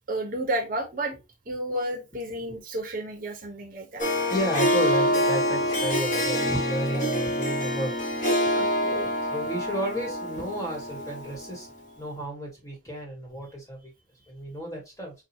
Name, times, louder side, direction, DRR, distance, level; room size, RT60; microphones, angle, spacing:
voice 1, 0.1-1.1 1.5-4.0 8.5-9.1, right 1 dB, 45° right, 1.0 m, -31 dB
Harp, 4.0-11.5, equal, 40° left, 1.2 m, -26 dB
voice 2, 4.2-8.1 9.0-11.7 12.0-13.9 14.3-15.1, right 1 dB, 15° left, 1.4 m, -32 dB
5.6 x 2.4 x 2.8 m
head